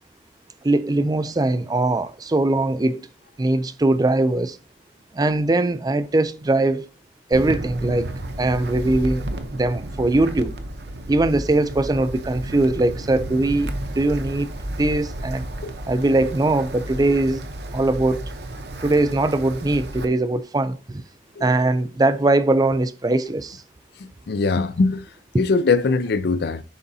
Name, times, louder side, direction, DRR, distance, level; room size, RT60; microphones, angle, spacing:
voice 1, 0.6-3.0 3.4-4.6 5.1-6.8 7.3-8.1 8.4-9.3 9.5-10.5 11.1-13.7 14.0-15.4 15.9-17.4 17.7-18.2 18.8-21.0 21.4-23.6 25.3-25.4, right 2 dB, 20° right, 0.4 m, -21 dB
Wind, 7.3-20.0, right 1 dB, 65° right, 0.8 m, -32 dB
voice 2, 24.3-25.0 25.4-26.6, left 4 dB, 65° left, 0.5 m, -21 dB
11.0 x 3.8 x 2.7 m
head